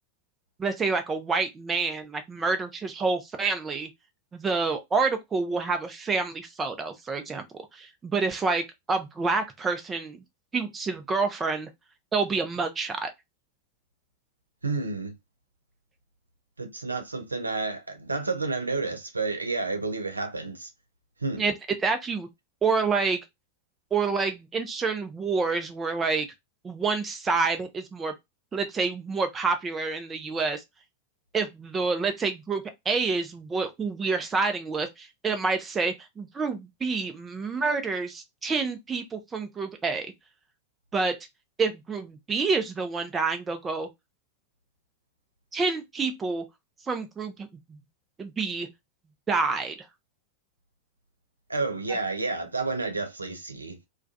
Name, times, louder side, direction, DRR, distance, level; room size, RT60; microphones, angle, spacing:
voice 1, 0.6-3.9 4.3-10.2 10.5-11.7 12.1-13.1 21.4-21.5 21.8-22.3 22.6-23.2 23.9-26.3 26.6-28.1 28.5-30.6 31.3-40.1 40.9-41.2 41.6-43.9 45.5-46.4 46.9-47.8 48.2-48.7 49.3-49.8, right 4 dB, 20° right, 0.5 m, -28 dB
voice 2, 14.6-15.1 16.6-20.7 21.2-21.4 51.5-53.9, right 3 dB, 80° right, 0.4 m, -30 dB
2.3 x 2.2 x 2.5 m
figure-of-eight pair, 90°, 0 cm